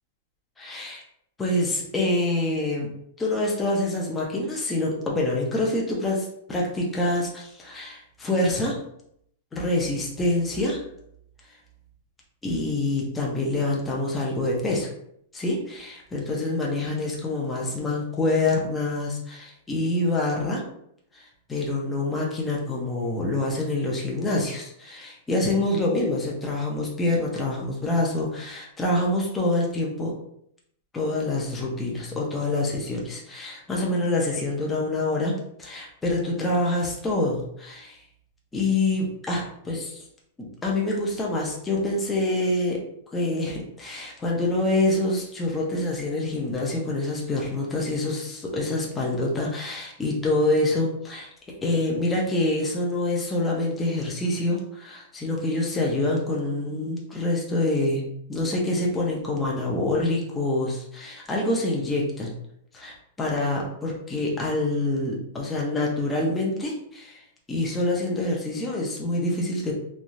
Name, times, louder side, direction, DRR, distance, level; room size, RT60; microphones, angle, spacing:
voice 1, 0.6-1.0 1.4-2.9 3.2-8.8 9.5-10.8 12.4-14.9 15.3-20.6 21.1-30.1 30.9-38.0 38.5-40.0 40.4-42.8 43.1-51.3 51.6-62.3 62.7-67.2 67.5-69.7, left 2 dB, 10° left, -2 dB, 0.5 m, -26 dB
3.1 x 2.3 x 2.5 m, 0.71 s
supercardioid pair, 170°, 0 cm